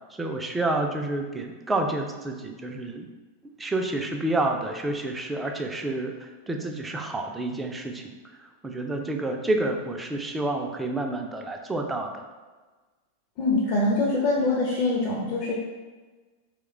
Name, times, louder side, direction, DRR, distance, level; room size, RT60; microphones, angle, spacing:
voice 1, 0.2-3.1 3.6-8.1 8.6-12.3, right 2 dB, 10° right, 2 dB, 0.4 m, -29 dB
voice 2, 13.4-15.5, left 2 dB, 35° left, -5 dB, 0.6 m, -24 dB
2.9 x 2.1 x 3.6 m, 1.3 s
figure-of-eight pair, 90°, 0 cm